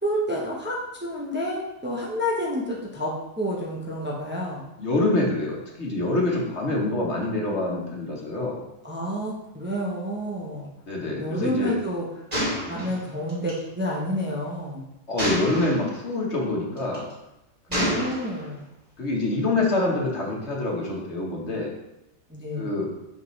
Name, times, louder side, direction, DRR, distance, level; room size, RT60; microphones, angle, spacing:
voice 1, 0.0-4.6 8.8-10.7 11.2-12.1 12.7-14.8 17.7-18.6 22.3-22.7, equal, 10° right, -3 dB, 0.8 m, -29 dB
voice 2, 4.8-8.6 10.9-11.8 12.6-12.9 15.1-17.1 17.7-18.0 19.0-21.7 22.6-22.9, left 2 dB, 60° left, -2 dB, 1.5 m, -26 dB
Gunshot gunfire, 12.3-13.6 15.2-15.9 16.8-17.1 17.7-18.5, equal, 30° right, 2.2 m, -28 dB
5.6 x 5.3 x 3.2 m, 0.90 s
omnidirectional pair, 1.3 m